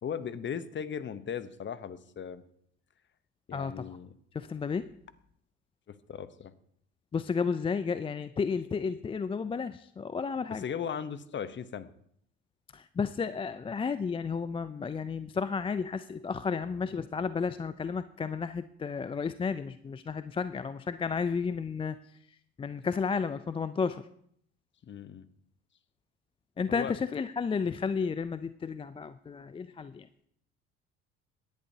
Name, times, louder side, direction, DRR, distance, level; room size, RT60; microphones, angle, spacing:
voice 1, 0.0-2.4 3.5-4.1 5.9-6.5 10.5-11.9 24.8-25.3 26.7-26.9, left 7 dB, 35° left, 14 dB, 0.8 m, -37 dB
voice 2, 3.5-4.0 4.3-4.9 7.1-10.6 12.7-22.0 22.6-24.1 26.6-30.3, left 5 dB, 15° left, 13 dB, 0.4 m, -32 dB
17.5 x 10.5 x 2.8 m, 0.67 s
hypercardioid pair, 75°, 33 cm